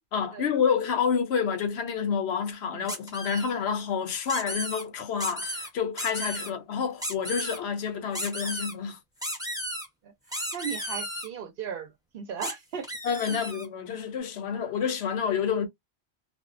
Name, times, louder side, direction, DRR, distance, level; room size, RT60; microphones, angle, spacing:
voice 1, 0.1-9.0 13.0-15.7, left 6 dB, 75° left, 0.9 m, -28 dB
sound 1, 2.9-3.5 4.3-4.8 5.2-5.7 6.0-6.5 7.0-7.6 8.1-8.7 9.2-9.9 10.3-11.3 12.4-12.5 12.8-13.7, equal, 5° right, 0.6 m, -34 dB
voice 2, 10.0-12.9 13.3-13.4, right 7 dB, 65° right, 0.7 m, -37 dB
2.5 x 2.1 x 2.4 m
omnidirectional pair, 1.1 m